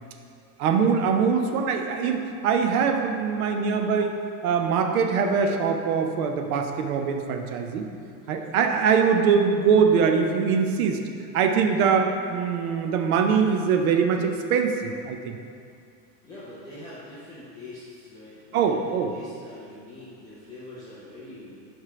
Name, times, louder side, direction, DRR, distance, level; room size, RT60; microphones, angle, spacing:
voice 1, 0.6-4.1 4.4-7.9 8.3-11.0 11.3-15.4 18.5-19.1, right 6 dB, 60° right, 5 dB, 0.7 m, -23 dB
voice 2, 8.2-8.6 16.2-21.7, left 1 dB, 10° left, -12 dB, 0.4 m, -44 dB
5.0 x 4.5 x 5.8 m, 2.4 s
supercardioid pair, 165°, 50 cm